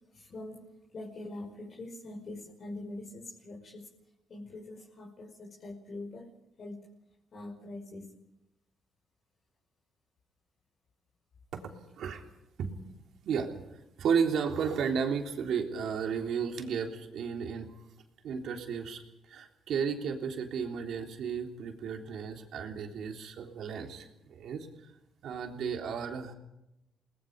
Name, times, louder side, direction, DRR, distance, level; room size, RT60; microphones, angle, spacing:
voice 1, 0.1-0.7 0.9-3.9 4.3-6.3 6.6-6.9 7.3-8.2, left 2 dB, 50° left, -2 dB, 5.5 m, -43 dB
voice 2, 13.2-17.7 18.2-19.0 19.3-24.7 25.2-26.3, right 6 dB, 70° right, 3 dB, 3.4 m, -33 dB
29.5 x 20.0 x 5.3 m, 0.87 s
cardioid pair, 90°, 0 cm